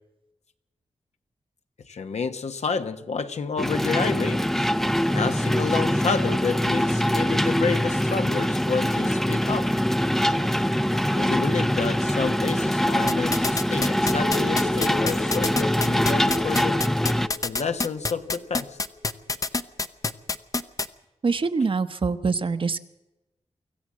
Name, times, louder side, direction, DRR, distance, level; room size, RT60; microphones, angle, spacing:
voice 1, 1.9-4.4 5.1-9.7 10.9-16.8 17.4-18.8, left 5 dB, 75° left, 8 dB, 1.3 m, -29 dB
sound 1, 3.6-17.3, equal, 5° left, 0.6 m, -23 dB
sound 2, 13.1-20.9, left 3 dB, 30° left, 0.8 m, -26 dB
sound 3, 14.1-19.3 19.6-19.7, left 5 dB, 45° left, 1.3 m, -36 dB
voice 2, 21.2-22.8, right 4 dB, 50° right, 10 dB, 1.0 m, -24 dB
25.0 x 14.5 x 7.6 m, 0.97 s
wide cardioid pair, 95°, 12 cm